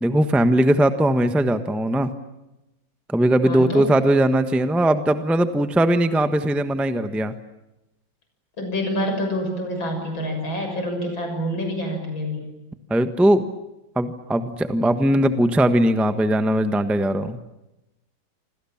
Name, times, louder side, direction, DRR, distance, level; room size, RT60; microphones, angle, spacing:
voice 1, 0.0-2.1 3.1-7.3 12.9-13.5 13.9-17.4, right 1 dB, ahead, 9 dB, 1.1 m, -19 dB
voice 2, 3.4-3.9 8.6-12.4, equal, 85° left, 4 dB, 7.4 m, -27 dB
28.5 x 25.5 x 7.3 m, 0.95 s
omnidirectional pair, 2.1 m